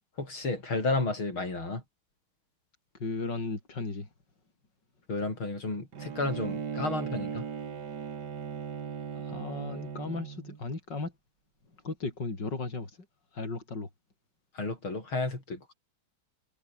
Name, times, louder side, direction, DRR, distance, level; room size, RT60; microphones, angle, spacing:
voice 1, 0.2-1.8 5.1-7.4 14.5-15.7, left 3 dB, 90° left, 7.5 m, -32 dB
voice 2, 3.0-4.1 9.1-11.1 11.8-13.0 13.3-13.9, left 3 dB, 60° left, 5.7 m, -35 dB
Bowed string instrument, 5.9-10.6, right 7 dB, 55° right, 2.3 m, -37 dB
omnidirectional pair, 2.2 m